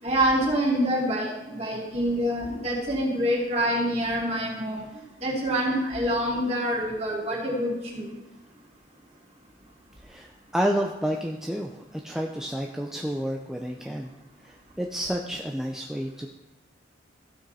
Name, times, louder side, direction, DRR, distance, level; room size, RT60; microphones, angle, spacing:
voice 1, 0.0-4.8 5.2-8.1, equal, 35° right, -4 dB, 3.0 m, -26 dB
voice 2, 10.0-14.1 14.4-16.3, equal, 5° right, 1 dB, 0.5 m, -30 dB
15.0 x 6.3 x 4.2 m, 0.99 s
head